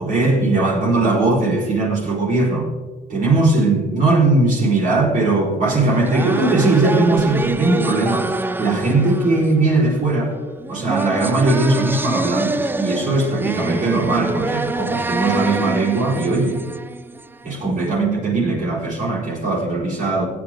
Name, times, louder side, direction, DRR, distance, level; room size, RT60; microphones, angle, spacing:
voice 1, 0.0-2.7 3.1-8.3 8.6-10.3 10.7-16.6 17.4-20.2, right 2 dB, 50° right, -6 dB, 4.7 m, -19 dB
sound 1, 5.7-17.5, right 2 dB, 10° right, 0.5 m, -26 dB
17.5 x 9.5 x 3.9 m, 1.3 s
cardioid pair, 110°, 17 cm